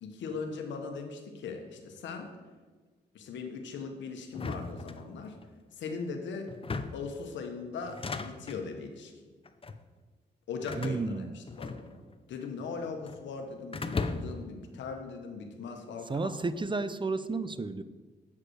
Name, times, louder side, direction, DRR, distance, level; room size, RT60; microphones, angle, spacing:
voice 1, 0.0-2.3 3.1-5.4 5.8-6.5 6.9-9.1 10.5-12.0 12.3-16.3, left 5 dB, 85° left, 4 dB, 1.1 m, -39 dB
sound 1, 4.3-5.5 6.5-7.1 7.8-8.6 9.4-9.8 10.7-12.2 12.4-13.2 13.7-14.5, left 3 dB, 30° left, 0.7 m, -37 dB
voice 2, 10.8-11.3 16.1-17.8, right 3 dB, 25° right, 13 dB, 0.5 m, -32 dB
8.3 x 4.9 x 6.4 m, 1.4 s
cardioid pair, 55°, 18 cm